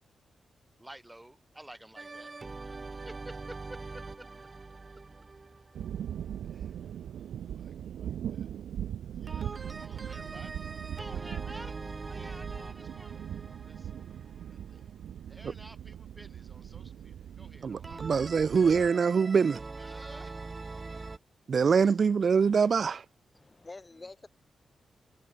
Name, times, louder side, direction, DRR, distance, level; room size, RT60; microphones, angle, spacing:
voice 1, 0.8-2.3 2.6-4.3 6.4-6.8 7.4-8.5 9.1-10.6 10.9-11.8 12.1-13.3 13.6-14.1 14.4-14.9 15.3-18.5 19.8-20.5 21.6-22.0 23.9-24.1, right 1 dB, 10° right, 5.5 m, -52 dB
sound 1, 2.0-6.7 9.3-15.1 17.8-21.2, right 3 dB, 30° right, 3.2 m, -43 dB
sound 2, 5.7-18.9, right 10 dB, 90° right, 0.9 m, -40 dB
voice 2, 17.6-19.6 21.5-23.1, right 6 dB, 55° right, 0.4 m, -24 dB
voice 3, 23.3-24.3, left 3 dB, 25° left, 6.8 m, -47 dB
cardioid pair, 80°, 0 cm